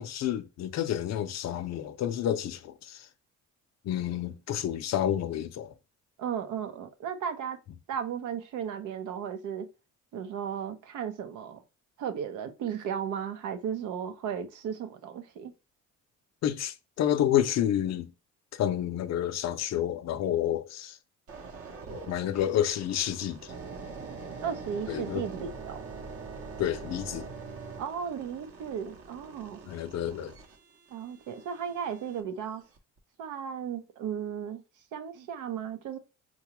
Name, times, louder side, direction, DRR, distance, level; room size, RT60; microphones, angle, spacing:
voice 1, 0.0-3.1 3.8-5.7 16.4-18.1 18.5-21.0 22.1-23.5 24.9-25.2 26.6-27.3 29.7-30.3, left 11 dB, 60° left, 0.5 m, -29 dB
voice 2, 6.2-7.6 7.9-9.7 10.1-11.6 12.0-15.5 24.4-25.8 27.8-29.6 30.9-32.6 33.2-34.6 34.9-36.0, right 8 dB, 85° right, 0.6 m, -35 dB
sound 1, 21.3-32.2 32.8-33.0, right 4 dB, 50° right, 0.8 m, -44 dB
3.8 x 2.3 x 2.9 m
cardioid pair, 90°, 30 cm